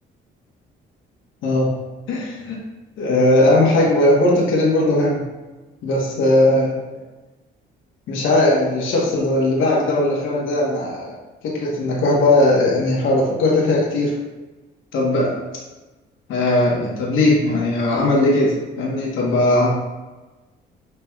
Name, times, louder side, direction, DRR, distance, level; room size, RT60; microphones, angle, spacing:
voice 1, 2.1-2.6 3.0-5.2 5.8-6.8 8.1-11.1 11.4-14.1 14.9-15.4 16.3-19.7, left 1 dB, 80° left, -3 dB, 1.0 m, -18 dB
5.8 x 3.3 x 2.3 m, 1.2 s
cardioid pair, 90°, 20 cm